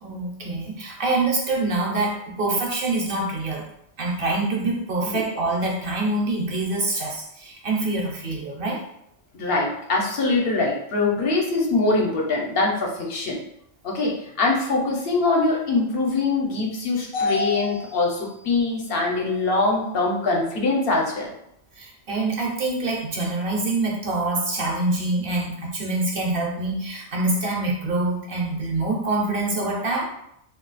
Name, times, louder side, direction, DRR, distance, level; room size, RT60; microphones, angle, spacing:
voice 1, 0.0-3.7 4.0-8.8 21.8-30.1, right 2 dB, 60° right, -2 dB, 0.9 m, -25 dB
voice 2, 9.3-13.4 13.8-21.3, left 3 dB, 65° left, -1 dB, 0.9 m, -23 dB
2.3 x 2.3 x 3.9 m, 0.77 s
omnidirectional pair, 1.1 m